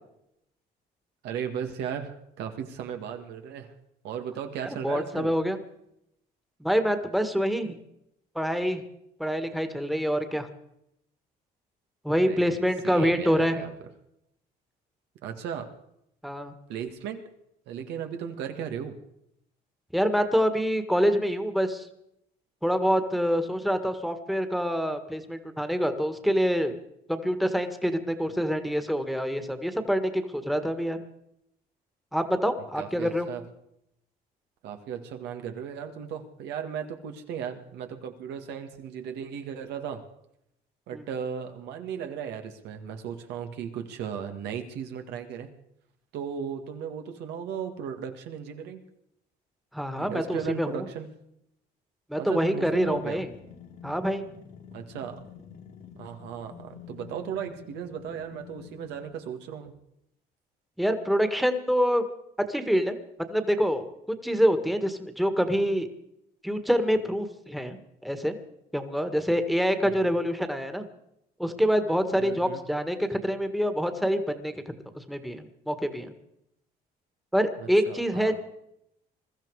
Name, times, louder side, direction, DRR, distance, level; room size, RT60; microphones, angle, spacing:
voice 1, 1.2-3.7 4.0-5.3 12.1-13.7 15.2-15.7 16.7-17.2 17.7-19.0 32.8-33.5 34.6-40.0 40.9-45.5 46.1-48.8 50.0-51.1 52.2-53.2 54.7-55.2 56.0-59.7 69.8-69.9 72.2-72.6 77.6-78.4, right 8 dB, 85° right, 6 dB, 2.0 m, -36 dB
voice 2, 4.6-5.6 6.6-7.8 8.3-8.8 9.2-10.5 12.0-13.6 16.2-16.5 19.9-21.9 22.6-26.8 27.1-31.0 32.1-33.3 40.9-41.0 49.7-50.9 52.1-53.3 53.8-54.3 60.8-62.0 62.5-63.0 63.3-63.9 64.2-65.9 66.4-68.4 68.7-70.9 71.4-74.5 74.9-76.1 77.3-78.4, equal, ahead, 8 dB, 1.7 m, -26 dB
sound 1, 52.6-59.4, left 7 dB, 55° left, 2.0 m, -48 dB
22.0 x 13.5 x 4.8 m, 0.78 s
cardioid pair, 110°, 17 cm